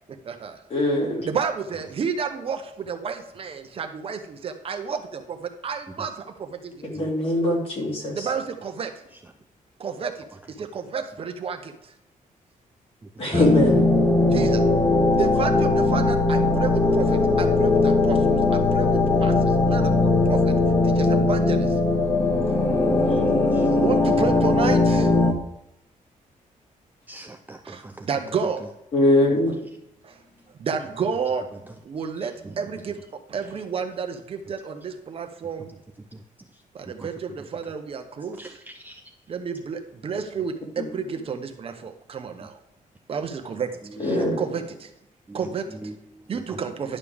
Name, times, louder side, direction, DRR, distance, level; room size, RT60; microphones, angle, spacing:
voice 1, 0.1-0.6 1.3-6.9 8.1-8.9 9.8-10.3 10.6-11.9 13.2-13.4 14.3-14.8 15.2-20.6 20.8-21.8 22.8-25.1 27.6-28.8 29.3-29.4 30.0-30.2 30.6-31.5 31.8-35.8 36.7-38.6 39.3-42.6 43.1-43.8 44.4-44.9 45.3-45.7 46.3-47.0, right 6 dB, 40° right, 6 dB, 0.8 m, -31 dB
voice 2, 0.7-1.3 6.8-8.3 13.2-13.9 28.9-29.5 40.8-40.9 44.0-44.4, left 1 dB, 45° left, -2 dB, 2.9 m, -22 dB
sound 1, 13.3-25.3, left 2 dB, 15° left, 1.0 m, -20 dB
voice 3, 23.1-23.7 27.1-28.1 36.1-36.2 37.0-37.1 38.4-39.0 43.8-44.3 45.3-46.6, right 2 dB, 15° right, 4 dB, 0.4 m, -42 dB
11.0 x 6.7 x 3.5 m, 0.83 s
wide cardioid pair, 170°, 14 cm